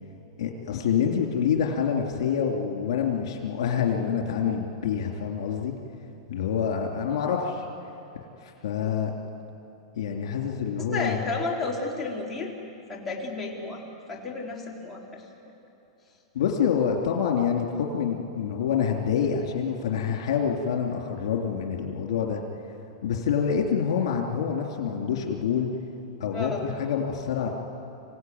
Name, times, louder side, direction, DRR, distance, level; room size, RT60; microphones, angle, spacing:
voice 1, 0.4-5.7 6.3-7.7 8.4-9.1 10.0-11.3 16.3-22.4 23.0-25.7 26.2-27.5, left 7 dB, 70° left, 2 dB, 3.0 m, -27 dB
voice 2, 10.9-12.5 12.9-13.8 14.1-15.2 26.3-26.7, left 3 dB, 10° left, -3 dB, 3.9 m, -32 dB
26.0 x 17.0 x 9.4 m, 2.9 s
hypercardioid pair, 135°, 3 cm